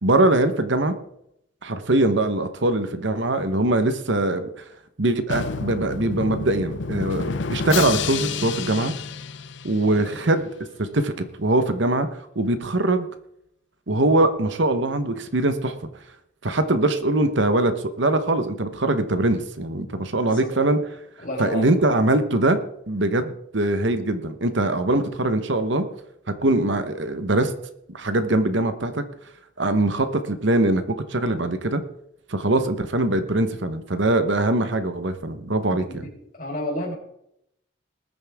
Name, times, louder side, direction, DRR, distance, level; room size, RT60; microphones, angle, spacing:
voice 1, 0.0-0.9 1.6-4.5 5.0-8.9 9.6-10.4 10.8-12.1 12.3-13.1 13.9-15.7 16.4-20.8 21.4-22.6 22.9-25.8 26.4-27.5 27.9-29.0 29.6-31.8 32.3-36.0, right 2 dB, 65° right, 10 dB, 1.2 m, -22 dB
Drum, 5.3-10.2, left 5 dB, 60° left, 0.7 m, -29 dB
voice 2, 21.2-21.7 35.7-35.8 36.4-36.9, equal, 40° left, 0 dB, 4.2 m, -30 dB
20.5 x 9.5 x 3.7 m, 0.76 s
head